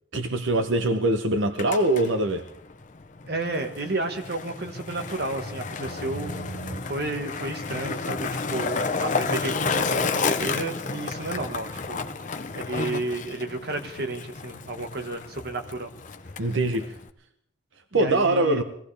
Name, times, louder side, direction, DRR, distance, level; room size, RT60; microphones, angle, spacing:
voice 1, 0.1-2.5 5.8-6.8 16.4-16.9 17.9-18.6, right 2 dB, 80° right, 0.9 m, -24 dB
Skateboard, 1.4-17.1, left 4 dB, 40° left, 0.7 m, -31 dB
voice 2, 3.2-6.4 6.8-12.0 12.5-15.9 17.9-18.6, right 2 dB, 50° right, 1.5 m, -32 dB
22.5 x 16.5 x 3.4 m
head